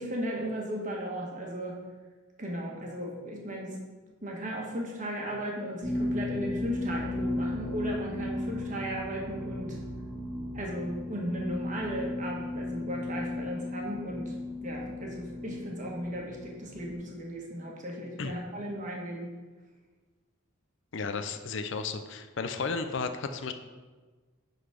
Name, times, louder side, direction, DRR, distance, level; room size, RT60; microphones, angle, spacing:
voice 1, 0.0-1.8 2.4-3.8 4.2-9.8 10.5-14.3 14.6-19.3, equal, 35° right, -1 dB, 1.4 m, -36 dB
sound 1, 5.8-16.9, left 1 dB, ahead, 1.9 m, -35 dB
voice 2, 20.9-23.5, left 4 dB, 60° left, 8 dB, 0.5 m, -33 dB
10.0 x 4.0 x 5.0 m, 1.3 s
head